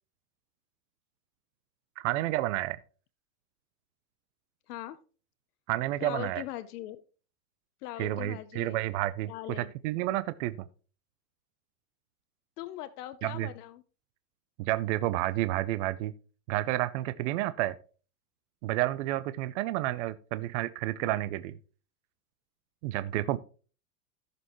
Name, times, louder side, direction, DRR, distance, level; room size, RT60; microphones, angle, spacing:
voice 1, 2.0-2.8 5.7-6.4 8.0-10.5 13.2-13.5 14.6-16.1 16.5-17.7 18.6-21.6 22.8-23.4, right 15 dB, 50° right, 0.6 m, -30 dB
voice 2, 4.7-5.0 6.0-7.0 7.8-8.8 9.3-9.7 12.6-13.8 21.0-21.2, left 14 dB, 70° left, 0.8 m, -40 dB
14.5 x 6.9 x 3.0 m
supercardioid pair, 155°, 48 cm